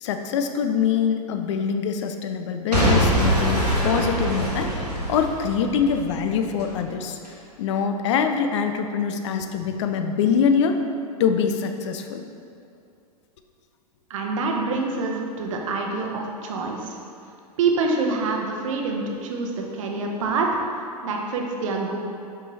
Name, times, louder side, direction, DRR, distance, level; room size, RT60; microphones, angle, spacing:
voice 1, 0.0-7.2 7.6-10.8 11.2-12.2, left 6 dB, 50° left, 6 dB, 0.5 m, -24 dB
Boom / Shatter / Crushing, 2.7-6.7 7.2-7.3, equal, 85° right, 1.3 m, -23 dB
voice 2, 14.1-17.0 17.6-22.0, right 3 dB, 55° right, 1 dB, 0.9 m, -26 dB
5.3 x 5.1 x 4.1 m, 2.4 s
figure-of-eight pair, 100°, 20 cm